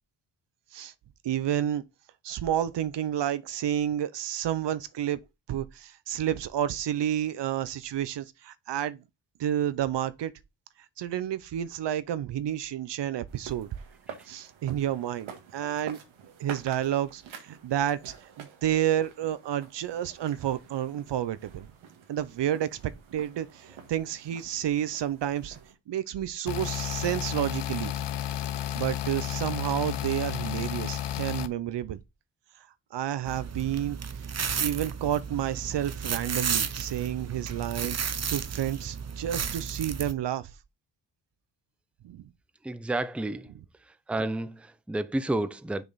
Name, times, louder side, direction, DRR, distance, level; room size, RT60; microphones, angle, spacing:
voice 1, 1.2-1.8 2.2-5.2 5.5-9.0 9.4-10.3 11.0-13.7 14.3-16.0 16.4-21.7 22.1-25.6 25.9-27.9 28.7-32.0 32.9-34.3 34.6-40.5 42.0-42.3, right 11 dB, 65° right, 0.8 m, -30 dB
sound 1, 13.3-25.7, right 7 dB, 85° right, 1.8 m, -48 dB
sound 2, 26.5-31.5, left 11 dB, 60° left, 0.9 m, -32 dB
sound 3, 33.3-40.1, right 6 dB, 35° right, 0.9 m, -33 dB
voice 2, 42.6-43.5 43.8-45.8, right 2 dB, 5° right, 0.6 m, -31 dB
6.5 x 5.0 x 4.1 m
cardioid pair, 75°, 46 cm